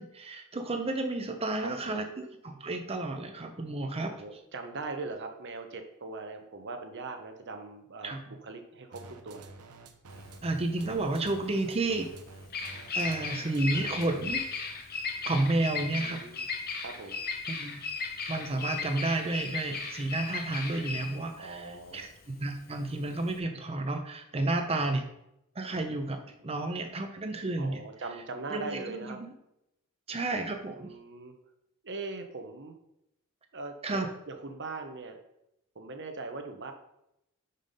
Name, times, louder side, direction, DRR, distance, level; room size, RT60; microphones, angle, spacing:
voice 1, 0.0-4.2 8.0-8.2 10.4-12.1 12.9-14.4 15.2-16.2 17.5-17.8 18.3-25.0 25.6-27.8 28.5-29.3 30.1-30.9 33.8-34.1, right 2 dB, 25° right, 6 dB, 0.6 m, -31 dB
voice 2, 1.6-2.0 4.1-9.4 15.7-16.4 16.8-17.2 21.3-22.1 27.6-29.2 30.8-31.3 31.8-32.7 33.5-35.2 35.7-36.7, right 3 dB, 55° right, 5 dB, 0.9 m, -41 dB
sound 1, 8.9-14.5, right 3 dB, 90° right, 0.8 m, -49 dB
Bird vocalization bird call bird song, 10.1-23.4, left 4 dB, 45° left, 0.8 m, -36 dB
5.8 x 5.4 x 5.2 m, 0.84 s
head